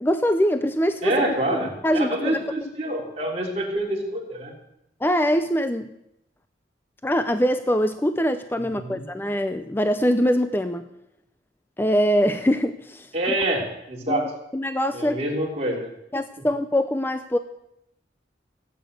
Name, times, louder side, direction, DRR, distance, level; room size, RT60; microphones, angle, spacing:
voice 1, 0.0-1.3 1.8-2.4 5.0-5.9 7.0-10.8 11.8-13.1 14.1-14.3 14.5-15.2 16.1-17.4, equal, 10° left, 10 dB, 0.5 m, -23 dB
voice 2, 1.0-4.5 8.6-9.0 13.1-14.3 14.9-15.9, right 1 dB, 35° right, -1 dB, 3.2 m, -27 dB
17.0 x 8.4 x 8.0 m, 0.83 s
head